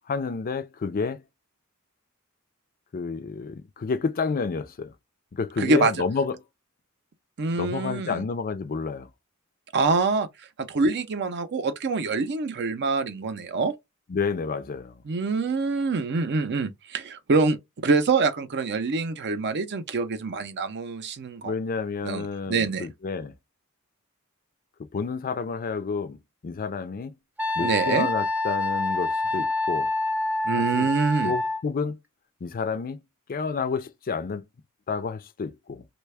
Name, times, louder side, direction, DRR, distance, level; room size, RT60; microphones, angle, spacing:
voice 1, 0.1-1.2 2.9-4.9 5.3-6.4 7.6-9.1 14.1-15.0 21.4-23.3 24.9-27.1 27.6-29.9 30.5-30.9 31.2-32.0 32.4-33.0 33.3-34.4 34.9-35.9, left 5 dB, 40° left, 0.4 m, -30 dB
voice 2, 5.6-5.9 7.4-8.2 9.7-10.3 10.7-13.7 15.0-21.5 22.0-22.9 27.6-28.1 30.4-31.4, right 4 dB, 55° right, 0.5 m, -25 dB
Wind instrument woodwind instrument, 27.4-31.6, left 2 dB, 10° right, 0.5 m, -26 dB
3.2 x 2.2 x 3.3 m
head